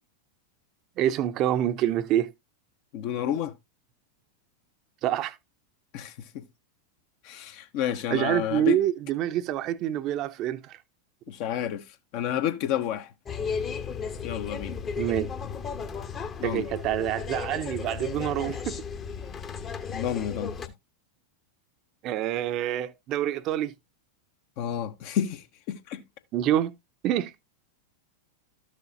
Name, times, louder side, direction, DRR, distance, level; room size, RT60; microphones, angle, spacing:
voice 1, 1.0-2.3 5.0-5.3 8.1-10.8 15.0-15.3 16.4-18.8 22.0-23.7 26.3-26.7 27.0-27.3, right 12 dB, 35° right, 0.8 m, -26 dB
voice 2, 2.9-3.5 5.9-6.5 7.2-8.8 11.3-11.8 12.1-13.1 14.2-14.8 16.4-16.7 19.9-20.5 24.6-26.0, left 10 dB, 45° left, 1.1 m, -30 dB
sound 1, 13.3-20.7, left 6 dB, 25° left, 1.1 m, -35 dB
13.0 x 6.5 x 2.6 m
figure-of-eight pair, 90°, 0 cm